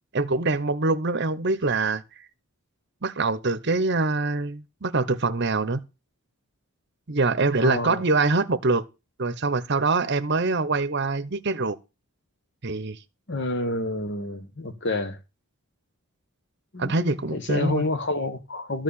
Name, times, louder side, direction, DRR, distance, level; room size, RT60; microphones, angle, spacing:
voice 1, 0.1-2.0 3.0-5.8 7.1-8.8 9.2-11.8 12.6-13.0 16.8-17.8, right 3 dB, 50° right, 0.8 m, -24 dB
voice 2, 7.6-8.0 13.3-15.2 16.7-16.9 17.3-18.8, left 2 dB, 55° left, 1.3 m, -28 dB
13.5 x 4.7 x 8.7 m
head